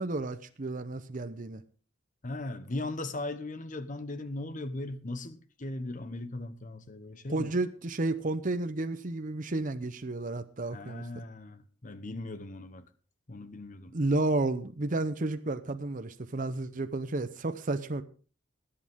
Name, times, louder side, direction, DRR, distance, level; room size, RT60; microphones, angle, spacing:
voice 1, 0.0-1.6 7.3-11.0 13.9-18.0, right 2 dB, 40° right, 0.7 m, -31 dB
voice 2, 2.2-7.6 10.7-12.8 13.3-13.9, left 2 dB, 40° left, 1.0 m, -38 dB
21.0 x 8.6 x 3.6 m
head